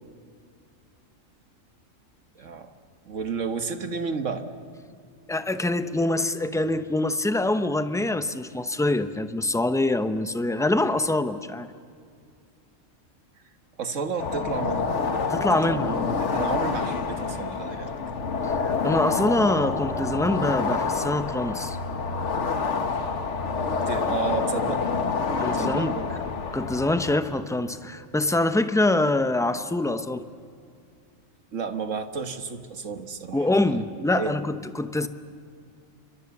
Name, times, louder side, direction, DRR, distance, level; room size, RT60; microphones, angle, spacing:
voice 1, 2.4-2.7 3.0-4.4 13.8-14.9 15.7-17.9 23.9-24.8 25.5-26.1 31.5-34.4, right 5 dB, 75° right, 8 dB, 1.8 m, -32 dB
voice 2, 5.3-11.7 15.3-16.2 18.4-21.8 25.4-26.0 26.5-30.2 33.3-35.1, left 2 dB, 5° left, 10 dB, 0.6 m, -25 dB
sound 1, 14.2-27.2, left 4 dB, 65° left, 1.7 m, -27 dB
28.5 x 25.0 x 7.2 m, 2.4 s
omnidirectional pair, 1.3 m